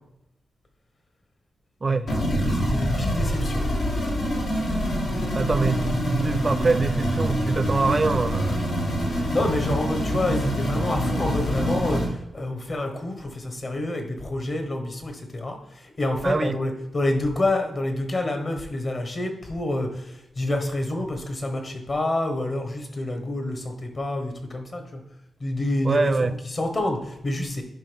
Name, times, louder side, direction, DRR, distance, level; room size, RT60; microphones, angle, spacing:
sound 1, 2.1-12.1, equal, 80° left, 1.8 m, -25 dB
voice 1, 2.4-3.7 9.3-15.6 15.8-25.0 25.4-27.6, left 1 dB, 45° left, 1.4 m, -28 dB
voice 2, 5.3-8.6 16.2-16.6 25.8-26.3, right 4 dB, 35° right, 0.4 m, -24 dB
11.0 x 3.7 x 3.5 m
cardioid pair, 95°, 0 cm